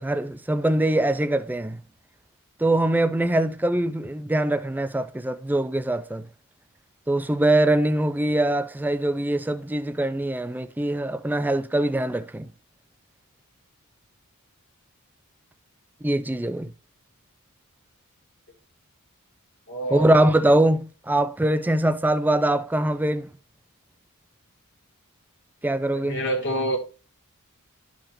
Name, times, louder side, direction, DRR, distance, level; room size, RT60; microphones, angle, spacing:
voice 1, 0.0-1.8 2.6-6.2 7.1-12.5 16.0-16.7 19.9-23.3 25.6-26.2, right 1 dB, 10° right, 0.3 m, -23 dB
voice 2, 19.7-20.1 25.9-26.8, right 1 dB, 55° left, 1.5 m, -27 dB
11.5 x 4.8 x 3.0 m
head